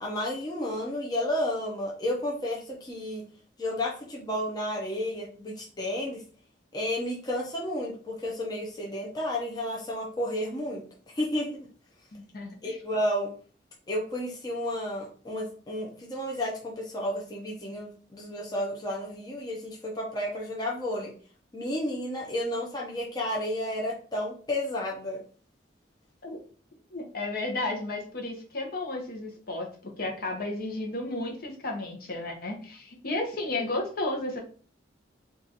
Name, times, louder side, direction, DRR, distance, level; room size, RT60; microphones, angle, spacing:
voice 1, 0.0-3.2 3.6-6.2 6.7-11.7 12.6-13.3 13.9-21.1 21.5-25.2, left 1 dB, 20° left, -3 dB, 0.6 m, -32 dB
voice 2, 12.1-12.5 26.2-26.4 26.9-34.4, left 2 dB, 55° left, 0 dB, 0.9 m, -33 dB
2.9 x 2.5 x 3.9 m, 0.42 s
head